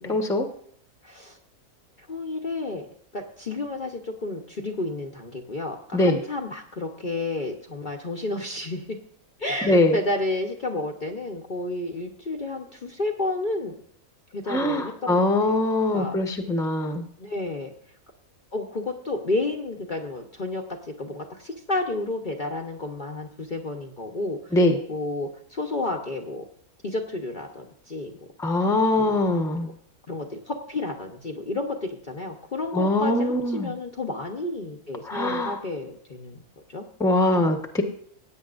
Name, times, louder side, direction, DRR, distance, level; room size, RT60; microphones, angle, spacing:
voice 1, 0.1-0.5 5.9-6.2 9.6-10.0 14.5-17.0 24.5-24.8 28.4-29.7 32.7-33.7 35.0-35.6 37.0-37.8, left 1 dB, ahead, 4 dB, 1.0 m, -22 dB
voice 2, 1.0-1.4 2.0-2.9 3.1-9.0 9.4-13.8 14.3-15.6 15.9-16.1 17.2-17.7 18.5-24.6 24.9-26.4 26.8-28.1 29.0-29.3 29.6-29.7 30.1-36.4 36.7-36.8 37.3-37.4, left 2 dB, 40° left, 1 dB, 1.0 m, -31 dB
16.5 x 9.2 x 2.5 m, 0.64 s
omnidirectional pair, 1.5 m